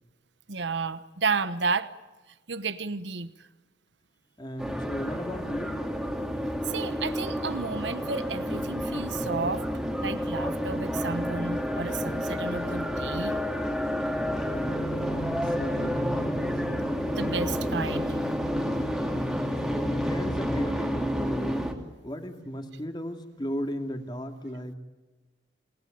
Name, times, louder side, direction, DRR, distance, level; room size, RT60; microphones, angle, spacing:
voice 1, 0.5-1.9 2.5-3.5 6.6-9.6 10.0-13.3 17.1-18.2, right 4 dB, 70° right, 13 dB, 1.1 m, -32 dB
voice 2, 4.4-5.8 15.0-16.6 19.6-21.7 22.0-24.7, equal, 25° left, 5 dB, 2.6 m, -35 dB
sound 1, 4.6-21.7, equal, ahead, 2.7 m, -30 dB
29.0 x 20.0 x 9.3 m, 1.2 s
head